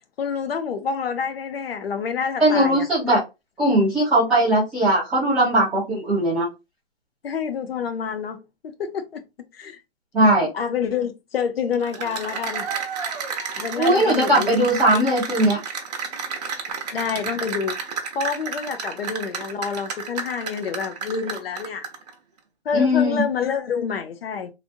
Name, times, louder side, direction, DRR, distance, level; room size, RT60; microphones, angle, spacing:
voice 1, 0.2-2.9 7.2-9.2 9.5-9.8 10.5-12.7 13.5-14.7 16.9-17.8 18.1-21.8 22.6-24.5, left 6 dB, 65° left, 0.8 m, -28 dB
voice 2, 2.4-3.2 3.6-6.5 10.1-10.5 13.8-15.6 22.7-23.2, right 1 dB, ahead, 0.4 m, -19 dB
Cheering / Applause, 11.7-22.1, right 6 dB, 40° right, 0.8 m, -31 dB
3.4 x 2.5 x 2.5 m
hypercardioid pair, 160°, 33 cm